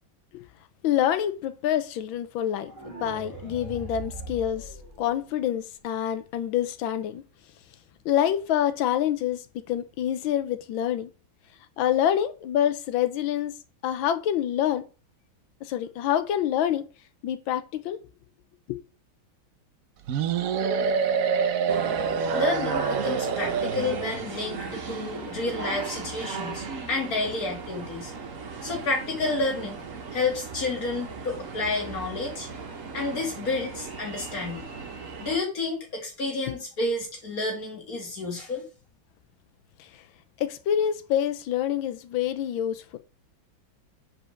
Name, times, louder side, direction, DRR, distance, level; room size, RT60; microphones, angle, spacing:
voice 1, 0.8-4.7 5.0-7.2 8.0-11.1 11.8-13.5 13.8-14.8 15.6-16.8 17.2-18.0 18.7-18.8 36.5-36.6 39.8-39.9 40.4-43.0, left 10 dB, 80° left, 1.4 m, -26 dB
sound 1, 2.7-5.7, right 2 dB, 10° right, 2.6 m, -40 dB
sound 2, 20.1-24.3, right 6 dB, 80° right, 0.7 m, -26 dB
sound 3, 21.7-35.4, right 5 dB, 45° right, 1.3 m, -37 dB
voice 2, 22.3-28.1 28.6-29.8 30.1-32.5 32.9-34.7 35.2-38.6, left 3 dB, 45° left, 2.5 m, -30 dB
5.3 x 4.5 x 6.2 m
omnidirectional pair, 2.2 m